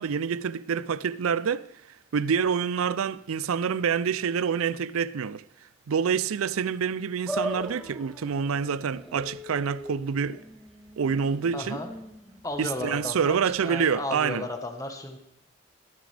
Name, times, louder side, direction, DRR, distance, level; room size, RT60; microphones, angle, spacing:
voice 1, 0.0-1.7 2.1-5.4 5.9-10.4 11.0-11.8 12.6-14.4, right 6 dB, 90° right, 0.4 m, -27 dB
sound 1, 7.3-13.7, right 1 dB, ahead, 0.8 m, -39 dB
voice 2, 11.5-11.9 12.4-15.2, left 1 dB, 15° left, 1.2 m, -34 dB
19.0 x 10.0 x 3.4 m
head